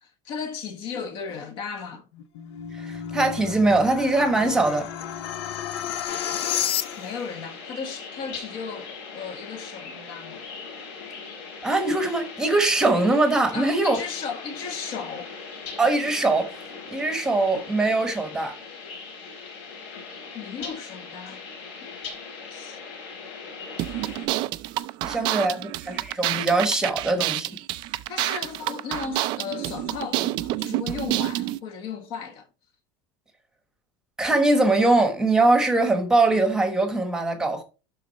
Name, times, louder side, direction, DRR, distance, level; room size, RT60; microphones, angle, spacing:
voice 1, 0.0-2.1 7.0-10.4 13.5-15.3 20.3-21.4 22.5-22.8 25.0-25.4 27.8-32.5, left 6 dB, 35° left, 1.4 m, -35 dB
sound 1, 2.1-7.3, left 10 dB, 70° left, 0.9 m, -31 dB
voice 2, 2.7-4.9 11.6-14.0 15.8-16.5 16.9-18.6 25.1-27.5 34.2-37.6, right 2 dB, 5° right, 1.3 m, -22 dB
sound 2, 6.0-24.3, left 5 dB, 55° left, 4.0 m, -40 dB
sound 3, 23.8-31.6, right 16 dB, 35° right, 0.4 m, -28 dB
12.0 x 4.0 x 4.1 m
supercardioid pair, 175°, 14 cm